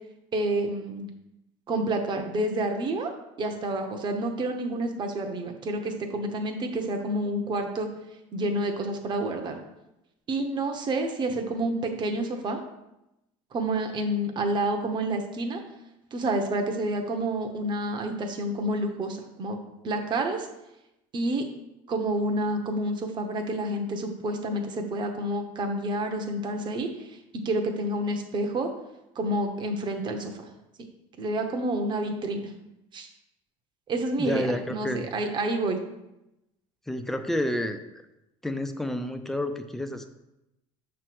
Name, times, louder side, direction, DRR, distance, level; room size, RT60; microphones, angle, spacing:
voice 1, 0.3-1.1 1.7-7.9 8.3-9.6 10.3-12.6 13.5-15.6 16.1-19.6 19.8-20.5 21.1-21.5 21.9-27.1 27.4-28.7 29.2-30.3 31.2-32.5 32.9-33.1 33.9-35.8, right 1 dB, 35° right, 4 dB, 1.0 m, -29 dB
voice 2, 34.2-35.1 36.9-37.8 38.4-40.1, left 1 dB, ahead, 7 dB, 0.5 m, -29 dB
6.7 x 3.2 x 5.9 m, 0.91 s
cardioid pair, 120°, 13 cm